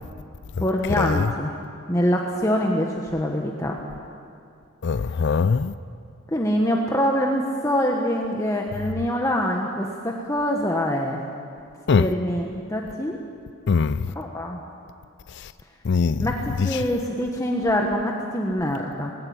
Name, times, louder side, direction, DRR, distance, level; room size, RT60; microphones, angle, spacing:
voice 1, 0.6-1.5 1.9-3.7 6.3-11.2 11.9-13.2 14.1-14.6 16.2-19.1, equal, 15° left, 1.2 m, -24 dB
voice 2, 4.8-5.7 11.9-12.1 13.7-14.0 15.9-16.3, left 5 dB, 55° left, 0.4 m, -21 dB
20.0 x 16.5 x 8.8 m
head